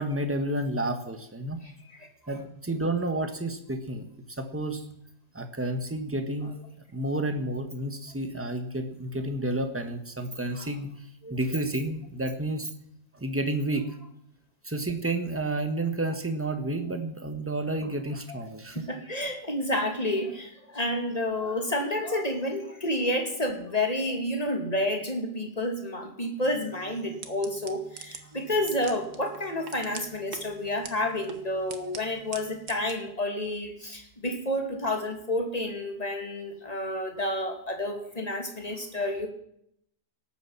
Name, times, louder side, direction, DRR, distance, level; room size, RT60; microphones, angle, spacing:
voice 1, 0.0-1.6 2.3-4.0 4.4-4.8 5.3-6.5 6.9-12.7 13.1-13.9 14.6-18.9, right 1 dB, 10° right, 7 dB, 1.4 m, -30 dB
voice 2, 18.7-39.3, left 1 dB, 25° left, 3 dB, 2.6 m, -30 dB
sound 1, 26.4-32.9, right 6 dB, 75° right, 1.8 m, -46 dB
18.0 x 8.4 x 7.4 m, 0.72 s
omnidirectional pair, 1.7 m